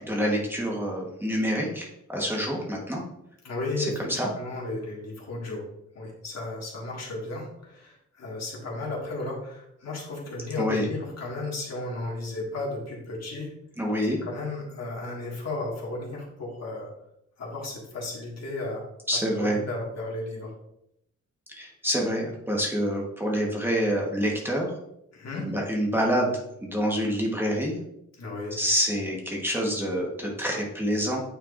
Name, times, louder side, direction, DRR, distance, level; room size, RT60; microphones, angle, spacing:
voice 1, 0.0-3.0 3.8-4.3 10.6-10.9 13.8-14.2 19.1-19.6 21.5-24.7 25.5-27.8 28.5-31.2, equal, 5° right, -2 dB, 1.2 m, -27 dB
voice 2, 3.4-5.6 5.9-13.5 14.2-16.9 17.4-18.8 19.1-20.5 25.1-25.4 28.2-28.6, left 2 dB, 60° left, -3 dB, 1.9 m, -34 dB
8.9 x 4.5 x 2.5 m, 0.78 s
wide cardioid pair, 130°, 29 cm